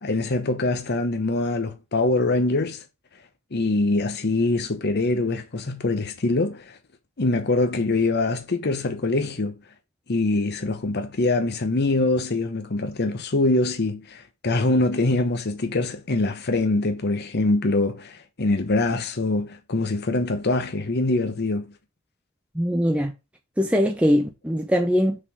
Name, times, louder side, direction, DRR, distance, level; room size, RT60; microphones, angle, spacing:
voice 1, 0.0-2.8 3.5-6.8 7.2-9.5 10.1-21.7, left 2 dB, 50° left, 0.9 m, -24 dB
voice 2, 22.5-23.1 23.6-25.2, equal, 5° right, 0.6 m, -21 dB
6.5 x 3.9 x 6.0 m
head